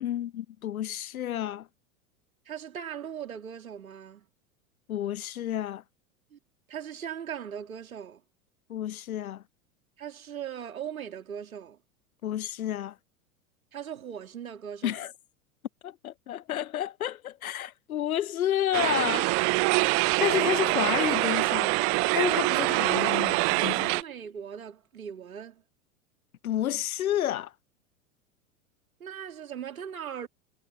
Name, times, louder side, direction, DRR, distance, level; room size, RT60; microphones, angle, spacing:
voice 1, 0.0-1.7 4.9-5.8 8.7-9.4 12.2-13.0 14.8-15.1 15.8-19.3 20.2-21.8 22.1-24.0 26.4-27.5, left 11 dB, 80° left, 0.6 m, -30 dB
voice 2, 2.5-4.2 6.3-6.4 6.7-8.2 10.0-11.8 13.7-15.0 23.8-25.6 29.0-30.3, right 8 dB, 75° right, 2.8 m, -39 dB
sound 1, 18.7-24.0, right 32 dB, 35° right, 0.6 m, -25 dB
figure-of-eight pair, 90°, 42 cm